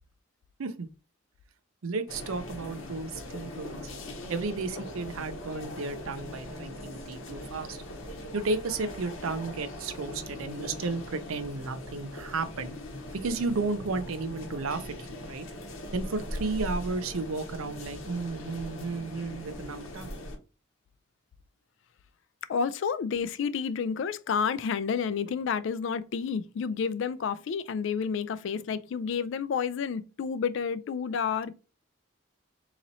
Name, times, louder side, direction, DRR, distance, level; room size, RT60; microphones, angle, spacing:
voice 1, 1.8-3.9 4.3-7.8 8.3-12.8 13.1-14.8 15.1-15.4 15.9-20.2, right 3 dB, 90° right, 0.5 m, -33 dB
sound 1, 2.1-20.4, left 1 dB, 80° left, 0.9 m, -40 dB
voice 2, 22.5-31.6, left 6 dB, 65° left, 0.3 m, -30 dB
4.0 x 2.9 x 2.6 m
head